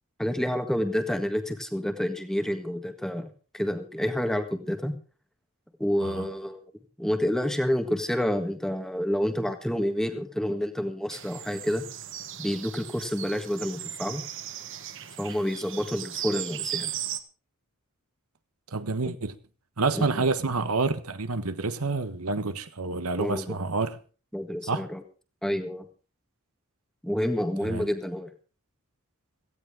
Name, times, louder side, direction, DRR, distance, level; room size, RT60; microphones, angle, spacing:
voice 1, 0.2-4.9 5.8-6.6 7.0-11.8 12.4-14.2 15.2-16.9 19.0-19.2 19.9-20.2 23.2-23.6 24.3-25.0 25.4-25.9 27.0-28.3, equal, ahead, 1.6 m, -29 dB
sound 1, 11.1-17.2, right 11 dB, 55° right, 1.4 m, -37 dB
voice 2, 18.7-19.3 19.8-24.0 24.7-24.8 27.6-27.9, right 3 dB, 75° right, 1.3 m, -28 dB
17.5 x 15.5 x 3.7 m
head